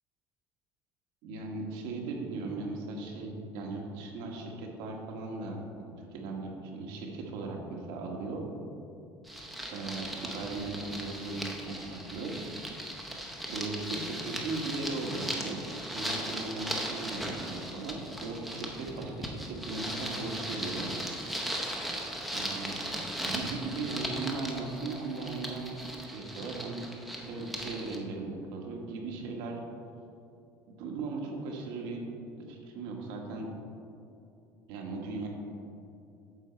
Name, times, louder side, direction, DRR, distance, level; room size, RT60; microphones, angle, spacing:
voice 1, 1.2-8.4 9.7-12.4 13.5-15.6 15.9-20.9 22.3-26.9 27.3-29.6 30.8-32.0 32.5-33.5 34.7-35.3, right 3 dB, 85° right, 1 dB, 1.5 m, -38 dB
sound 1, 9.3-28.0, equal, ahead, 0.7 m, -38 dB
9.0 x 6.8 x 4.5 m, 2.7 s
cardioid pair, 175°, 8 cm